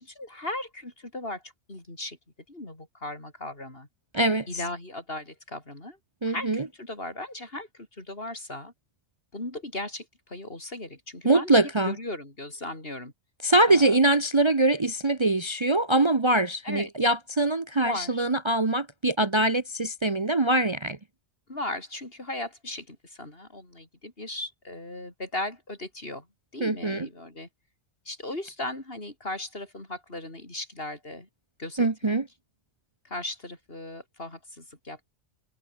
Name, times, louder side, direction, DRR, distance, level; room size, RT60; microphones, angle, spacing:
voice 1, 0.0-2.2 2.5-3.9 4.5-6.0 6.3-7.7 8.0-8.7 9.3-13.1 13.7-14.0 16.6-16.9 17.8-18.2 21.5-26.3 26.5-27.5 28.1-31.3 31.6-32.2 33.0-35.1, left 1 dB, 55° left, 5.5 m, -37 dB
voice 2, 4.1-4.5 6.2-6.7 11.2-12.0 13.4-21.0 26.6-27.1 31.8-32.3, right 2 dB, 25° right, 1.0 m, -23 dB
omnidirectional pair, 1.2 m